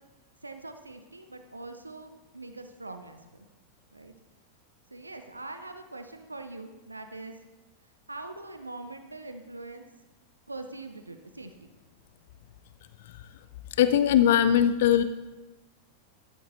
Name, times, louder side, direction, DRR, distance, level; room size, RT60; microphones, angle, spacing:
voice 1, 0.4-3.5 3.9-4.1 4.9-7.4 8.1-9.9 10.5-11.7, right 2 dB, 80° right, 8 dB, 0.6 m, -43 dB
voice 2, 13.8-15.0, left 10 dB, 55° left, 12 dB, 0.3 m, -20 dB
12.5 x 12.0 x 2.7 m, 1.1 s
figure-of-eight pair, 90°, 0 cm